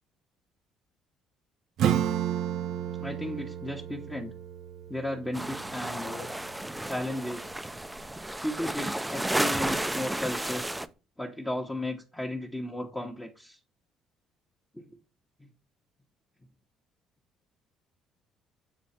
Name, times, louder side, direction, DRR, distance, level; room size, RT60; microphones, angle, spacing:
Acoustic guitar / Strum, 1.8-7.0, right 10 dB, 70° right, 0.5 m, -32 dB
voice 1, 3.0-4.3 4.9-6.3 6.8-7.6 8.4-10.8 11.2-13.6 14.7-14.9 15.4-15.5, left 1 dB, 10° left, -1 dB, 0.9 m, -35 dB
sound 1, 5.3-10.9, right 1 dB, 10° right, 0.4 m, -32 dB
7.2 x 3.2 x 4.2 m, 0.33 s
supercardioid pair, 75°, 0 cm